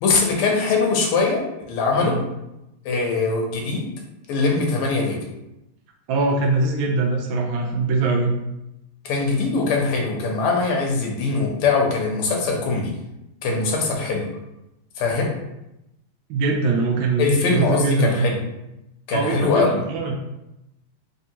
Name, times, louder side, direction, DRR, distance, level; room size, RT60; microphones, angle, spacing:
voice 1, 0.0-1.4 1.7-2.2 2.9-3.9 4.3-5.2 9.1-12.9 13.4-14.3 15.0-15.3 17.2-18.4 19.1-19.8, left 4 dB, 90° left, 0 dB, 1.7 m, -21 dB
voice 2, 6.1-8.3 16.3-18.3 19.1-20.2, right 3 dB, 75° right, 2 dB, 1.3 m, -22 dB
3.5 x 3.5 x 2.8 m, 0.90 s
omnidirectional pair, 2.4 m